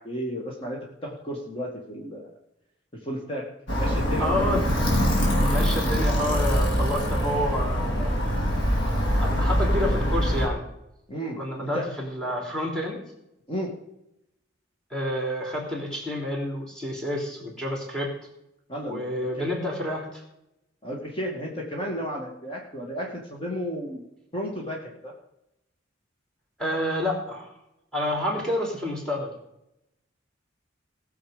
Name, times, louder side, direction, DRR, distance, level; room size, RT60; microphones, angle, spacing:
voice 1, 0.0-2.3 3.0-3.5 3.7-4.6 11.1-11.9 13.5-13.7 18.7-19.1 19.4-19.5 20.8-24.0 24.3-25.1, equal, 30° left, -1 dB, 2.1 m, -33 dB
Alarm, 3.7-10.5, equal, 80° left, 4.0 m, -23 dB
voice 2, 4.2-4.7 5.4-8.3 9.1-10.7 11.4-13.0 14.9-18.1 18.9-20.2 26.6-27.5 27.9-29.3, left 1 dB, 5° left, 0 dB, 3.4 m, -29 dB
19.0 x 7.2 x 5.2 m, 0.84 s
head